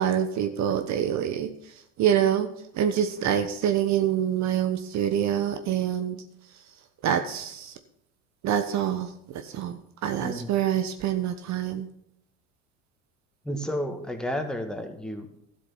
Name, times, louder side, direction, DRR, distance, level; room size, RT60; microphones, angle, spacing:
voice 1, 0.0-1.5 2.0-2.5 2.7-6.2 7.0-7.8 8.4-11.9, right 9 dB, 45° right, 9 dB, 1.2 m, -26 dB
voice 2, 10.2-10.5 13.4-15.3, equal, ahead, 5 dB, 1.9 m, -31 dB
12.5 x 7.6 x 5.6 m, 0.75 s
hypercardioid pair, 85°, 37 cm